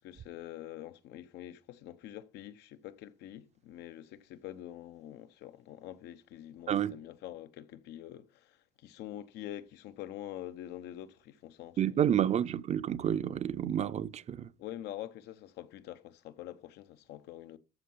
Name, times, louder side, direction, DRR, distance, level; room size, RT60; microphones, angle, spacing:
voice 1, 0.0-12.3 14.6-17.6, left 12 dB, 85° left, 0.9 m, -46 dB
voice 2, 11.8-14.5, right 10 dB, 40° right, 0.5 m, -29 dB
14.0 x 4.7 x 5.5 m
cardioid pair, 110°, 17 cm